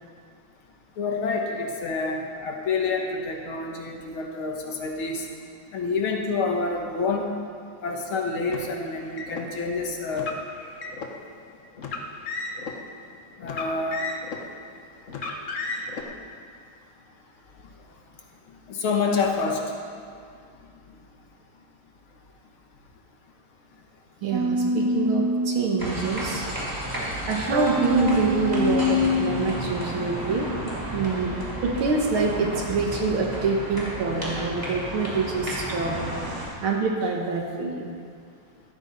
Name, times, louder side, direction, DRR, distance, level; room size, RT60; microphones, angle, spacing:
voice 1, 1.0-5.3 5.7-7.3 7.8-10.3 13.4-14.0 18.7-19.6, left 4 dB, 75° left, 2 dB, 2.2 m, -27 dB
Car, 8.5-9.5 10.1-11.1 11.8-12.8 13.4-14.5 15.1-16.0, left 4 dB, 45° left, 1.2 m, -33 dB
voice 2, 24.2-26.5 26.7-30.5 30.9-31.3 31.6-36.0 36.6-37.9, right 4 dB, 70° right, 0 dB, 2.2 m, -26 dB
sound 1, 24.3-25.8 27.5-29.4, left 2 dB, 55° right, 1.9 m, -24 dB
sound 2, 25.8-36.5, right 1 dB, 10° right, 3.2 m, -33 dB
15.0 x 14.0 x 4.1 m, 2.2 s
omnidirectional pair, 2.4 m